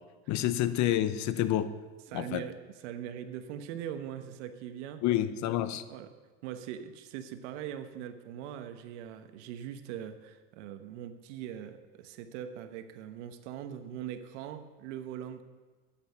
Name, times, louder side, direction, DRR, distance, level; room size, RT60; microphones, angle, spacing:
voice 1, 0.3-1.7 2.1-2.5 5.0-5.8, left 12 dB, 55° left, 13 dB, 0.8 m, -28 dB
voice 2, 2.1-2.6 2.8-5.0 5.9-6.1 6.4-15.4, right 10 dB, 80° right, 9 dB, 1.2 m, -41 dB
13.5 x 8.8 x 5.7 m, 1.3 s
supercardioid pair, 120°, 35 cm